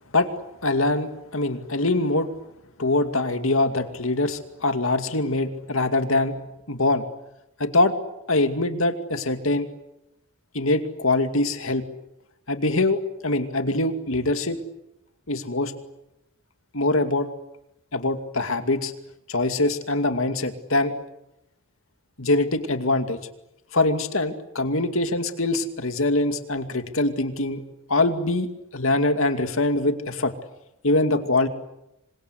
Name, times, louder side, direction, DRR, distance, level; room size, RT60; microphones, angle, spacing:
voice 1, 0.6-2.3 2.8-6.3 6.7-7.0 7.6-7.9 8.3-9.7 10.5-11.8 12.5-14.6 15.3-15.7 16.7-17.3 17.9-18.9 19.3-20.9 22.2-23.2 23.7-27.6 27.9-28.5 28.7-30.3 30.8-31.5, left 2 dB, 65° left, 8 dB, 2.4 m, -23 dB
27.0 x 25.5 x 8.2 m, 0.89 s
head